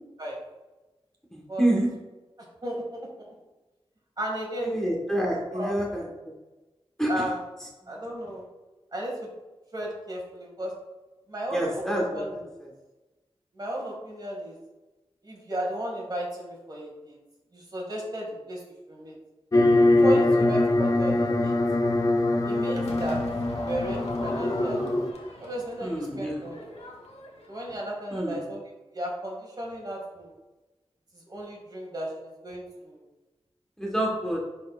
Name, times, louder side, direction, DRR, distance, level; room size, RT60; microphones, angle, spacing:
voice 1, 1.3-1.9 4.6-6.0 7.0-7.2 11.5-12.2 25.8-26.4 28.1-28.4 33.8-34.4, right 1 dB, 5° left, -3 dB, 1.2 m, -27 dB
voice 2, 2.6-3.3 4.2-4.8 5.5-5.8 7.1-7.4 7.9-8.4 8.9-9.3 9.7-10.7 11.3-12.5 13.5-14.6 15.2-17.2 17.5-19.2 20.0-21.5 22.4-23.2 23.6-24.8 25.4-26.9 27.5-30.3 31.1-33.0, right 1 dB, 40° right, -2 dB, 2.0 m, -34 dB
sound 1, 19.5-25.1, left 2 dB, 35° left, 0.5 m, -23 dB
Crowd / Fireworks, 22.8-28.1, left 2 dB, 75° left, 1.1 m, -41 dB
10.5 x 4.2 x 2.4 m, 1.1 s
wide cardioid pair, 80°, 11 cm